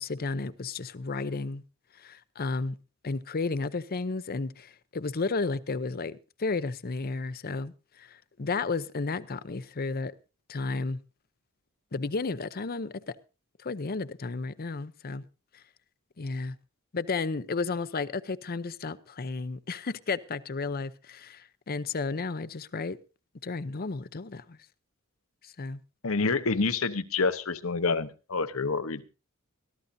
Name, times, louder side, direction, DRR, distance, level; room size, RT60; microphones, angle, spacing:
voice 1, 0.0-1.6 2.0-2.8 3.0-7.7 8.0-10.1 10.5-11.0 11.9-13.0 13.6-15.2 16.2-16.6 16.9-23.0 23.4-24.6 25.6-25.8, left 3 dB, 45° left, 0.7 m, -33 dB
voice 2, 26.0-29.0, left 4 dB, 80° left, 1.0 m, -27 dB
22.0 x 13.0 x 2.7 m
head